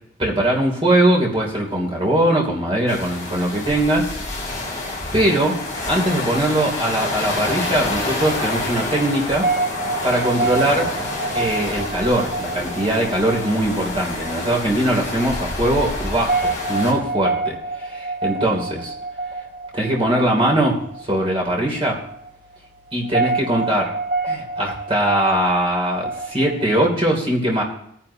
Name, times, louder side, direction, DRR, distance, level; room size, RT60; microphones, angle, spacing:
voice 1, 0.2-4.1 4.6-4.7 5.1-5.6 5.9-9.5 10.0-10.9 11.3-18.9 19.7-22.0 22.9-23.8 24.2-27.6, right 1 dB, 30° right, -1 dB, 3.0 m, -21 dB
sound 1, 2.9-16.9, left 2 dB, 20° left, 5.5 m, -28 dB
sound 2, 7.4-26.9, right 3 dB, 55° right, 3.3 m, -28 dB
19.5 x 10.0 x 2.9 m, 0.70 s
head